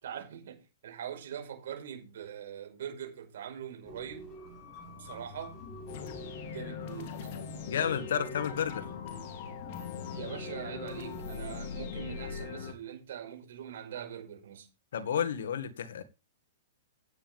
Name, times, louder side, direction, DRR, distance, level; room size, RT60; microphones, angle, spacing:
voice 1, 0.0-4.3 5.0-5.6 6.4-7.1 10.1-14.7, right 9 dB, 70° right, 4.9 m, -42 dB
sound 1, 3.8-12.4, left 1 dB, 30° left, 6.6 m, -45 dB
sound 2, 5.9-12.7, left 8 dB, 50° left, 3.0 m, -41 dB
voice 2, 7.7-8.8 14.9-16.0, left 8 dB, 75° left, 2.0 m, -31 dB
15.5 x 9.5 x 3.6 m
hypercardioid pair, 145°, 0 cm